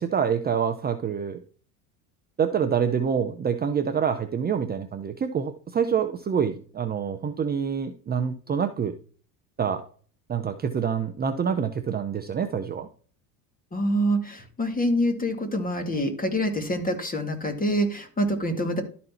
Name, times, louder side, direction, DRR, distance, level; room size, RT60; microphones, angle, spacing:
voice 1, 0.0-1.4 2.4-8.9 9.6-9.8 10.3-12.9, right 7 dB, 20° right, 6 dB, 0.7 m, -26 dB
voice 2, 13.7-18.8, equal, 20° left, 6 dB, 2.0 m, -26 dB
12.0 x 4.2 x 4.3 m, 0.42 s
supercardioid pair, 105°, 46 cm